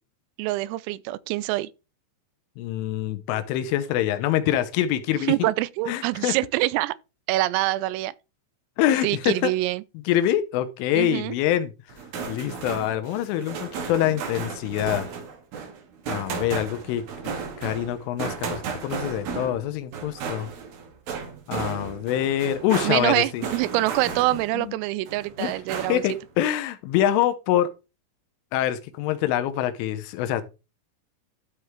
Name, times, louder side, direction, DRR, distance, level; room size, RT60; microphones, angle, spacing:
voice 1, 0.4-1.7 5.3-7.0 7.3-8.1 9.0-9.8 10.9-11.4 22.8-26.0, right 18 dB, 85° right, 3.2 m, -25 dB
voice 2, 2.6-5.3 5.9-6.4 8.8-9.5 10.1-11.7 12.3-15.1 16.1-17.0 17.6-20.5 21.5-23.5 24.5-24.8 25.4-25.5 25.9-27.7 28.5-30.4, left 11 dB, 80° left, 3.2 m, -25 dB
sound 1, 11.9-24.7 25.1-26.2, right 6 dB, 55° right, 3.0 m, -34 dB
12.5 x 4.8 x 3.4 m
omnidirectional pair, 6.0 m